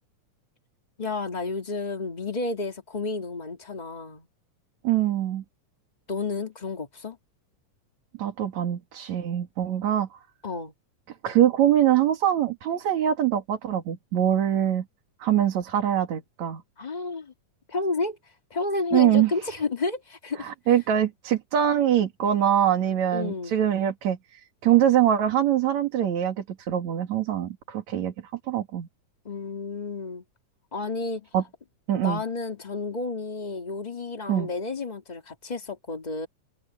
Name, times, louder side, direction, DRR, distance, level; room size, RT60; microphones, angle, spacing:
voice 1, 1.0-4.3 6.1-7.2 10.4-10.7 16.8-17.3 17.7-18.2 18.5-20.5 23.1-23.6 29.2-30.2 30.7-31.3 31.9-36.3, left 3 dB, 20° left, 1.1 m, -31 dB
voice 2, 4.8-5.4 8.2-10.2 11.2-14.8 15.2-16.6 18.9-19.3 20.4-28.1 28.5-28.9 31.3-31.4 31.9-32.2 34.3-34.5, right 11 dB, 60° right, 3.4 m, -23 dB
omnidirectional pair, 3.7 m